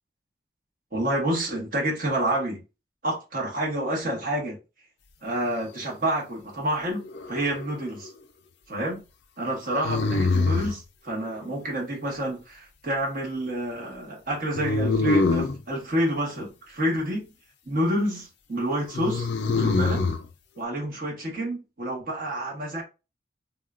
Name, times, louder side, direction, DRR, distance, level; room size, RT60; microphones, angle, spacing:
voice 1, 0.9-2.6 3.0-4.6 5.2-8.1 8.7-9.0 9.4-17.3 17.7-20.0 20.6-22.8, right 1 dB, 50° right, 1.2 m, -28 dB
sound 1, 7.1-7.8 9.8-10.8 14.6-15.6 18.9-20.2, left 3 dB, 80° left, 0.5 m, -24 dB
3.5 x 2.3 x 2.4 m
head